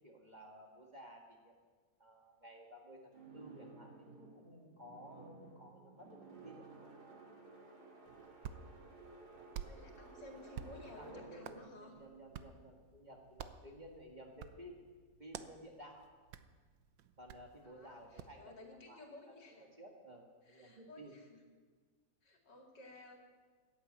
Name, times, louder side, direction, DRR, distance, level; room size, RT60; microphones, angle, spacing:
voice 1, 0.0-1.5 2.0-6.7 11.0-14.8 15.2-16.1 17.2-18.5 18.9-21.1, equal, 25° right, 0 dB, 1.7 m, -55 dB
sound 1, 3.1-13.1, right 3 dB, 60° right, 2.9 m, -56 dB
Hands, 8.1-18.4, right 8 dB, 90° right, 1.5 m, -52 dB
voice 2, 9.6-12.0 17.6-19.7 20.4-21.4 22.2-23.2, left 2 dB, 70° left, 2 dB, 2.9 m, -55 dB
14.5 x 9.7 x 9.0 m, 1.5 s
omnidirectional pair, 1.9 m